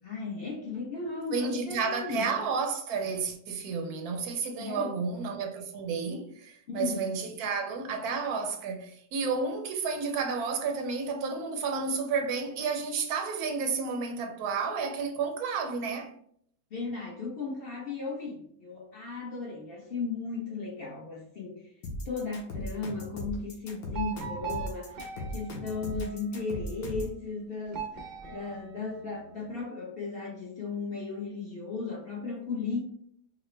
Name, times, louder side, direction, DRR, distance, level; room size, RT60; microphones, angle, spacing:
voice 1, 0.0-2.3 4.6-5.0 6.7-7.1 16.7-21.7 22.0-32.8, left 4 dB, 45° left, 0.9 m, -36 dB
voice 2, 1.3-16.1, right 5 dB, 75° right, 1.1 m, -31 dB
sound 1, 21.8-27.2, left 1 dB, 70° left, 1.5 m, -37 dB
sound 2, 23.9-26.6 27.7-29.5, right 7 dB, 55° right, 0.5 m, -41 dB
4.9 x 2.1 x 3.2 m
omnidirectional pair, 1.7 m